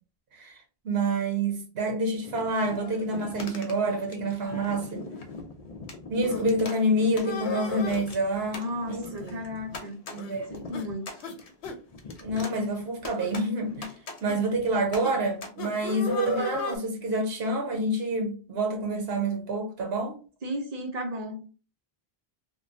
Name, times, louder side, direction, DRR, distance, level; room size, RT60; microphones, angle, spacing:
voice 1, 0.3-5.0 6.1-9.4 10.1-10.5 12.2-13.9 14.2-20.2, right 1 dB, 85° right, 1.0 m, -28 dB
sound 1, 2.2-15.5, left 3 dB, 50° left, 0.5 m, -42 dB
sound 2, 6.2-6.4 7.2-8.1 9.0-9.4 9.7-9.8 10.2-10.4 10.7-10.9 11.2-11.4 11.6-11.8 12.5-12.7 13.2-13.4 14.3-14.4 15.0-15.2 15.6-16.8, left 5 dB, 90° left, 0.8 m, -35 dB
voice 2, 8.5-10.0 10.5-11.2 20.4-21.5, equal, 45° right, 0.7 m, -34 dB
3.0 x 2.2 x 2.5 m
omnidirectional pair, 1.0 m